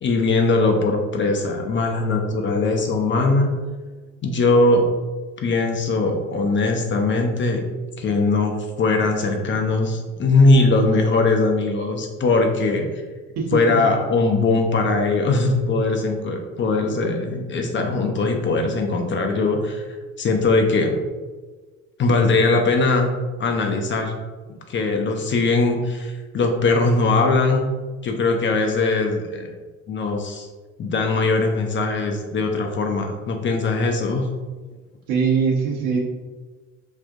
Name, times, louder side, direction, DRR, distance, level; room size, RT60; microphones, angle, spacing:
voice 1, 0.0-3.5 4.2-4.9 5.4-7.6 8.0-12.9 13.5-21.0 22.0-23.1 23.4-24.2 24.7-27.7 28.0-29.5 29.9-30.5 30.8-34.3, left 3 dB, 30° left, 3 dB, 0.5 m, -20 dB
voice 2, 13.4-13.8 35.1-36.0, right 5 dB, 60° right, -1 dB, 1.0 m, -21 dB
5.2 x 2.5 x 2.5 m, 1.3 s
figure-of-eight pair, 60°, 40 cm